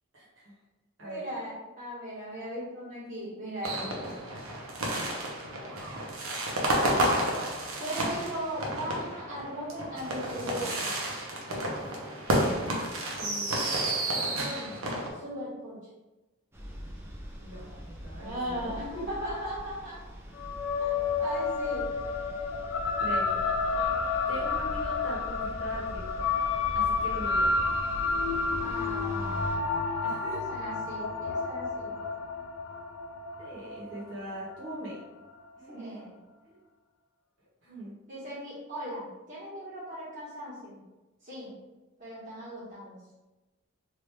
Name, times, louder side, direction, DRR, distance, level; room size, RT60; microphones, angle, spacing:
voice 1, 0.1-0.5 1.0-1.3 13.1-13.5 17.4-19.1 23.0-23.4 24.3-26.3 26.7-27.5 30.0-30.5 33.4-35.0 35.6-36.0 36.4-36.5 37.6-38.0, right 1 dB, 70° right, -6 dB, 1.2 m, -41 dB
voice 2, 1.0-4.1 7.8-10.9 14.3-14.7 15.1-15.8 18.2-20.1 20.8-21.9 28.6-29.6 30.2-32.0 35.7-36.1 38.1-40.8 41.2-41.5 42.0-43.0, equal, 35° right, -11 dB, 1.4 m, -38 dB
sound 1, 3.6-15.1, right 1 dB, 85° right, 0.8 m, -31 dB
sound 2, 16.5-29.6, equal, 10° right, 0.4 m, -42 dB
sound 3, 20.4-35.1, left 4 dB, 75° left, 0.3 m, -30 dB
3.1 x 2.6 x 3.3 m, 1.1 s
head